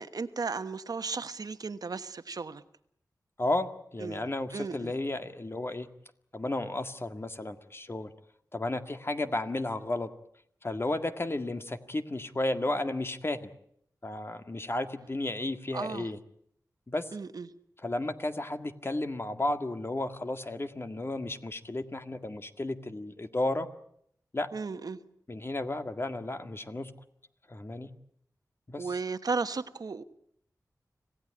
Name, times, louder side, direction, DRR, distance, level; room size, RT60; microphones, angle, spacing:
voice 1, 0.0-2.6 4.0-4.2 4.5-4.9 15.7-16.1 17.1-17.5 24.5-25.0 28.8-30.0, right 4 dB, 70° right, 11 dB, 1.2 m, -35 dB
voice 2, 3.4-5.9 6.3-8.1 8.5-10.1 10.6-13.4 14.0-16.2 16.9-17.1 17.8-23.7 24.3-24.5 25.3-26.9 27.5-27.9 28.7-28.9, left 2 dB, 35° left, 8 dB, 1.8 m, -33 dB
26.5 x 16.5 x 10.0 m, 0.71 s
wide cardioid pair, 65°, 7 cm